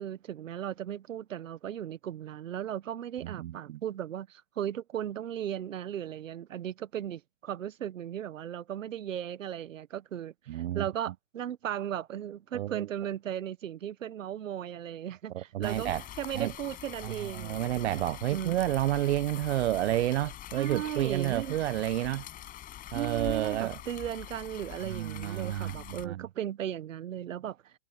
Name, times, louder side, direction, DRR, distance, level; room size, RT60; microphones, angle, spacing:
voice 1, 0.0-15.9 16.2-17.8 18.3-18.6 20.5-21.6 22.9-27.7, right 10 dB, 75° right, 1.5 m, -36 dB
voice 2, 3.2-3.8 10.5-10.8 12.5-12.9 15.3-16.0 16.3-16.5 17.0-22.2 22.9-23.8 24.8-26.3, right 14 dB, 55° right, 0.8 m, -30 dB
sound 1, 15.6-26.1, left 12 dB, 20° left, 6.1 m, -44 dB
hypercardioid pair, 150°, 39 cm